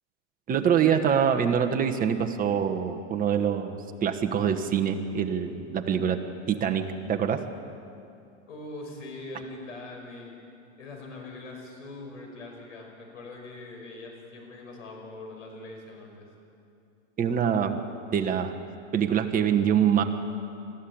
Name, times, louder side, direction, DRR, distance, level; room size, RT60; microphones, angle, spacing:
voice 1, 0.5-6.2 6.5-7.4 17.2-17.8 18.1-18.6 18.9-20.0, right 8 dB, 20° right, 5 dB, 1.3 m, -25 dB
voice 2, 8.5-10.4 10.8-16.3, left 2 dB, 85° left, 1 dB, 5.5 m, -42 dB
21.0 x 14.0 x 8.8 m, 2.6 s
hypercardioid pair, 125°, 37 cm